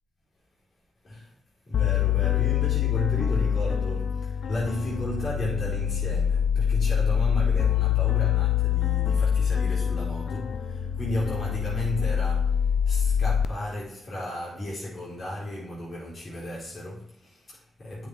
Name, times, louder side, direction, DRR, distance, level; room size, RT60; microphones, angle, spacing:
voice 1, 1.0-1.3 1.6-18.1, left 1 dB, 50° left, 3.6 m, -34 dB
sound 1, 1.7-13.5, left 8 dB, 75° left, 0.5 m, -25 dB
9.3 x 5.6 x 4.5 m
supercardioid pair, 40°, 0 cm